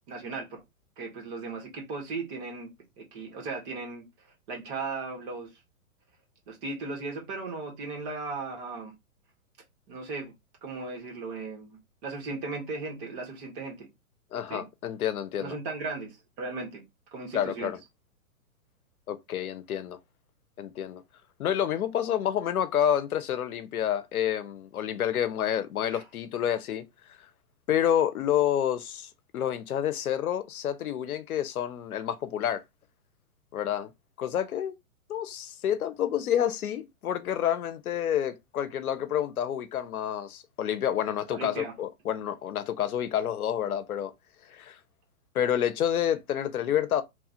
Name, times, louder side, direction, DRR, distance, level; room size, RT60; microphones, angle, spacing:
voice 1, 0.1-0.6 1.0-2.7 3.0-4.1 4.5-5.5 6.5-8.9 9.9-10.3 10.6-13.9 14.5-14.6 15.4-16.8 17.1-17.7 25.9-26.0 41.3-41.7, right 3 dB, 40° right, 1.4 m, -37 dB
voice 2, 14.3-15.5 17.3-17.8 19.1-20.0 20.6-21.0 21.4-26.8 27.7-32.6 33.5-33.9 34.2-34.7 35.1-44.1 44.5-44.8 45.3-47.0, left 10 dB, 80° left, 0.6 m, -29 dB
3.0 x 2.3 x 2.7 m
hypercardioid pair, 130°, 43 cm